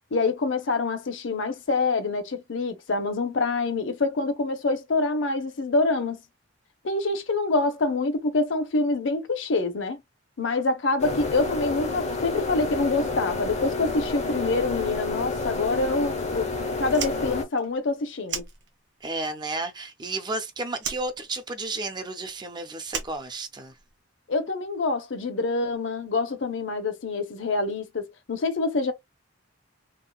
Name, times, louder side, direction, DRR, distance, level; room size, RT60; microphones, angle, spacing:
voice 1, 0.1-6.2 6.8-10.0 10.4-16.5 16.8-18.4 24.3-28.9, left 3 dB, 70° left, 0.7 m, -26 dB
sound 1, 11.0-17.4, left 3 dB, 35° left, 0.6 m, -29 dB
Fire, 16.9-19.1 19.4-20.4 20.8-23.9, right 7 dB, 65° right, 0.9 m, -36 dB
voice 2, 19.0-23.7, right 2 dB, 25° right, 0.5 m, -32 dB
3.6 x 2.2 x 2.2 m
head